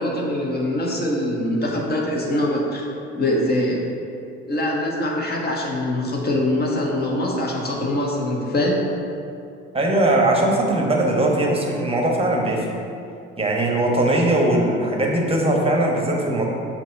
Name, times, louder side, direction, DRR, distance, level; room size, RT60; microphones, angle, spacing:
voice 1, 0.0-2.9 3.1-3.9 4.5-8.8, left 1 dB, 25° left, -2 dB, 1.4 m, -23 dB
voice 2, 9.7-12.7 13.4-16.5, right 1 dB, 15° right, -1 dB, 1.2 m, -20 dB
6.6 x 3.0 x 5.3 m, 2.6 s
figure-of-eight pair, 55°, 37 cm